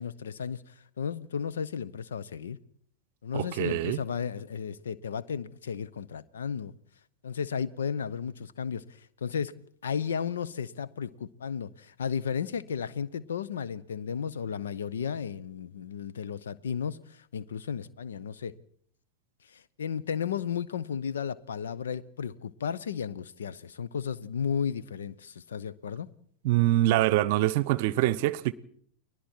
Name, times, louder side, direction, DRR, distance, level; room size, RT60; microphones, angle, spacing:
voice 1, 0.0-2.6 3.2-6.7 7.2-9.5 9.8-18.5 19.5-26.1, left 7 dB, 65° left, 0.9 m, -34 dB
voice 2, 3.3-4.0 26.4-28.5, right 15 dB, 50° right, 0.8 m, -24 dB
30.0 x 21.0 x 4.5 m
figure-of-eight pair, 90°, 0 cm